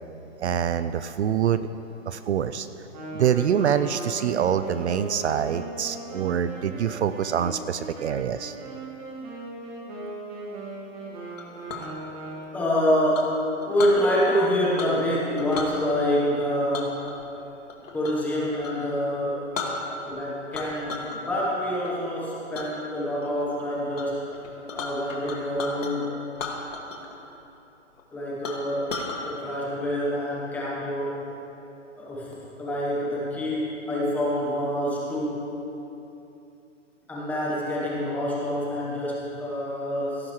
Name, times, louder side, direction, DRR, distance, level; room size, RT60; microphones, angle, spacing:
voice 1, 0.4-1.6 2.1-2.7 3.1-8.5, right 9 dB, 60° right, 12 dB, 0.5 m, -25 dB
Wind instrument woodwind instrument, 2.9-12.8, right 2 dB, 30° right, 1.8 m, -38 dB
Chink clink, 11.4-11.9 13.1-14.0 14.8-15.1 15.4-15.7 16.7-18.3 18.6-18.8 19.2-19.3 19.5-20.2 20.5-21.2 21.5-21.9 22.5-22.7 23.2-23.6 23.9-24.1 24.3-25.9 26.3-27.1 27.4-27.5 28.0-28.1 28.4-29.2, left 4 dB, 80° left, 2.0 m, -35 dB
voice 2, 12.5-17.1 17.9-19.5 20.0-24.3 24.7-26.2 28.1-31.3 32.0-35.5 37.1-40.3, equal, 5° left, -6 dB, 0.9 m, -27 dB
16.5 x 9.6 x 3.1 m, 2.9 s
hypercardioid pair, 160°, 38 cm